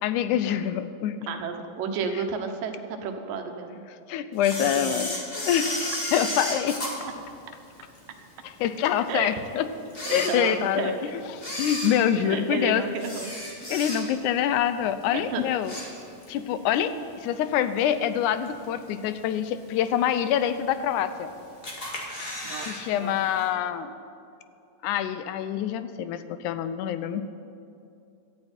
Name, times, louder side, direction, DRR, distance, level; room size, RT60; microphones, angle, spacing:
voice 1, 0.0-1.2 4.1-6.8 8.4-9.7 10.1-11.1 11.6-12.8 13.7-15.8 16.3-21.3 22.7-23.9 24.8-27.2, left 9 dB, 80° left, 12 dB, 1.9 m, -26 dB
voice 2, 1.3-3.7 4.6-5.0 9.1-9.3 10.1-10.9 12.2-13.3 15.1-15.4 22.4-23.2, right 6 dB, 85° right, 5 dB, 2.8 m, -32 dB
Camera, 4.4-8.0 8.5-8.6 9.3-9.4 9.8-10.9 11.3-14.3 14.7-15.0 15.3-16.4 16.7-16.8 17.8-17.9 18.5-18.9 19.3-19.4 19.6-19.7 19.8-19.9 20.7-21.2 21.6-22.8 23.0-23.1 23.4-23.5, left 1 dB, 20° left, 1.7 m, -33 dB
17.5 x 13.5 x 4.4 m, 2.6 s
omnidirectional pair, 3.8 m